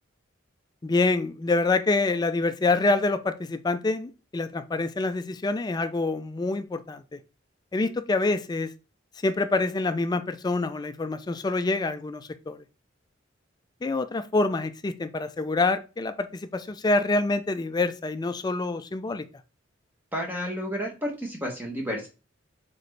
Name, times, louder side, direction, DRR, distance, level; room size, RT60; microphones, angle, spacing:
voice 1, 0.8-7.2 7.7-8.7 9.2-12.6 13.8-19.2, left 3 dB, 20° left, 11 dB, 0.3 m, -26 dB
voice 2, 20.1-22.1, equal, 10° right, 0 dB, 0.9 m, -31 dB
4.2 x 3.9 x 3.2 m, 0.31 s
head